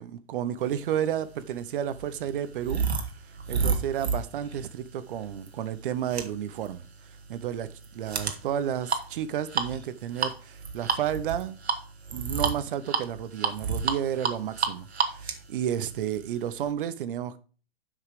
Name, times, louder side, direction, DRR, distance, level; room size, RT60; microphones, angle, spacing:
voice 1, 0.0-2.8 3.5-6.8 7.3-11.6 12.1-17.4, right 10 dB, 55° right, 1.0 m, -31 dB
sound 1, 1.0-16.7, right 5 dB, 90° right, 1.6 m, -32 dB
7.9 x 5.7 x 5.1 m
hypercardioid pair, 130°, 31 cm